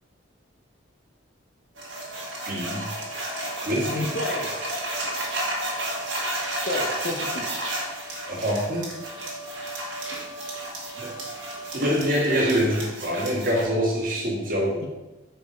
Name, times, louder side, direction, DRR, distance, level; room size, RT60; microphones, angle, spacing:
sound 1, 1.8-13.6, right 1 dB, 65° right, 1.7 m, -32 dB
voice 1, 2.4-2.9 3.7-4.1 8.3-8.8 11.0-11.1 11.7-14.8, equal, 45° right, -4 dB, 1.7 m, -25 dB
voice 2, 3.9-4.6 6.7-7.6 14.7-14.9, left 1 dB, 55° left, 2 dB, 0.9 m, -30 dB
5.3 x 4.2 x 5.0 m, 1.1 s
head